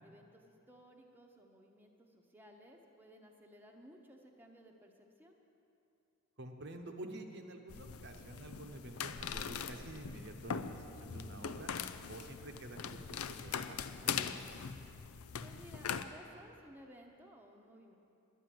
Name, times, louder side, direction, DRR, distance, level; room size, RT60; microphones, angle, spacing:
voice 1, 0.0-5.4 15.4-18.0, equal, 10° right, 1 dB, 0.9 m, -58 dB
voice 2, 6.4-11.7 12.1-14.6, right 2 dB, 55° right, 4 dB, 0.9 m, -49 dB
sound 1, 7.7-16.0, left 7 dB, 85° left, 0.5 m, -41 dB
10.5 x 10.5 x 7.7 m, 2.7 s
head